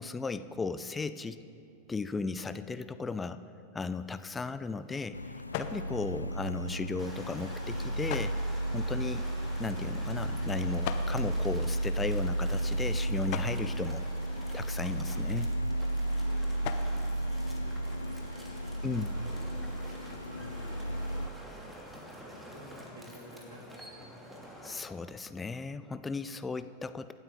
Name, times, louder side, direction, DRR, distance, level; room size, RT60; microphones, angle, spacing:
voice 1, 0.0-1.4 1.9-3.4 3.7-5.2 5.6-8.3 8.7-9.2 9.6-14.0 14.5-15.5 18.8-19.1 24.6-27.1, left 4 dB, 15° left, 12 dB, 0.6 m, -36 dB
sound 1, 3.9-18.2, left 10 dB, 50° left, 1.0 m, -46 dB
sound 2, 5.1-21.3, right 1 dB, 85° left, 0.5 m, -33 dB
sound 3, 7.0-24.8, equal, 5° right, 2.6 m, -48 dB
voice 2, 16.5-19.6 20.1-24.1, right 1 dB, 65° right, -4 dB, 4.5 m, -55 dB
26.5 x 12.5 x 3.8 m, 2.7 s
figure-of-eight pair, 90°, 0 cm